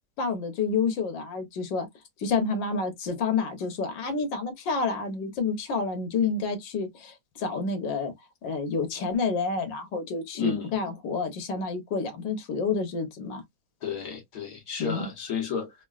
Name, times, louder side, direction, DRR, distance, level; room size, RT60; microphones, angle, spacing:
voice 1, 0.2-1.9 2.2-8.1 8.4-13.4 14.8-15.1, left 4 dB, 85° left, 1.6 m, -29 dB
voice 2, 10.3-10.7 13.8-15.7, left 7 dB, 60° left, 1.6 m, -31 dB
3.7 x 2.4 x 2.3 m
omnidirectional pair, 1.9 m